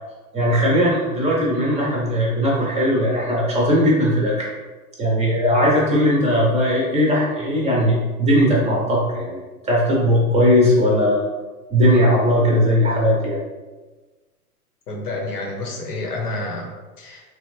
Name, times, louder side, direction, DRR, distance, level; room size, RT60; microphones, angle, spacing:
voice 1, 0.3-4.5 5.0-9.4 9.6-11.2 11.7-13.4, equal, 15° right, -4 dB, 0.6 m, -18 dB
voice 2, 14.9-17.2, left 2 dB, 80° left, 1 dB, 0.9 m, -29 dB
3.0 x 2.5 x 3.1 m, 1.3 s
hypercardioid pair, 105°, 46 cm